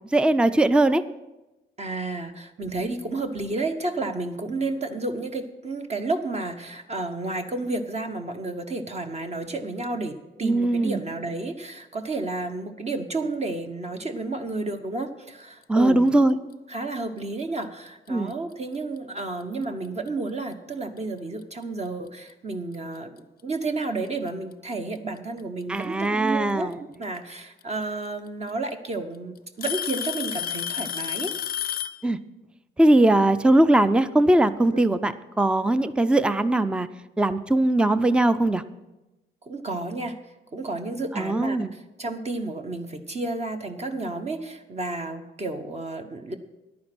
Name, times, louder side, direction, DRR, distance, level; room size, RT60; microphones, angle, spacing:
voice 1, 0.1-1.0 10.4-11.0 15.7-16.4 18.1-18.3 25.7-26.7 32.0-32.2 32.8-36.9 37.2-38.6 41.2-41.7, right 1 dB, 5° right, 13 dB, 0.5 m, -20 dB
voice 2, 1.8-16.0 16.7-26.7 27.0-31.3 34.7-34.9 39.4-40.2 40.5-46.3, right 2 dB, 35° right, 6 dB, 1.0 m, -31 dB
Alarm / Tick-tock, 18.1-18.3 19.2-19.3 20.1-20.2 21.9-22.0 23.2-23.3 24.5-25.0 26.7-26.8 28.1-28.2 28.5-28.9 29.6-32.0, left 10 dB, 50° left, 0.5 m, -30 dB
10.5 x 9.4 x 6.0 m, 1.0 s
cardioid pair, 90°, 20 cm